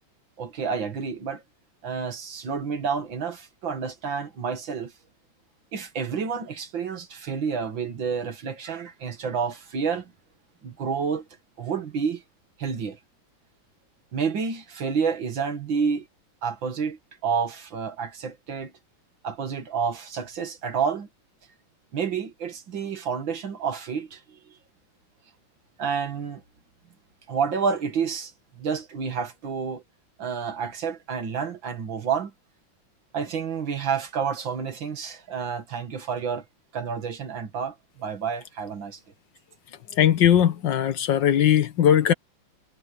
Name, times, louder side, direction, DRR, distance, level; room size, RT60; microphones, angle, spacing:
voice 1, 0.4-1.4 1.8-4.9 5.7-10.1 10.6-11.3 11.6-12.2 12.6-13.0 14.1-16.1 16.4-18.7 19.2-21.1 21.9-24.5 25.8-26.4 27.3-29.8 30.2-32.3 33.1-36.4 36.7-39.0, right 6 dB, 85° right, 2.8 m, -29 dB
voice 2, 39.9-42.1, left 10 dB, 70° left, 2.0 m, -19 dB
omnidirectional pair, 2.0 m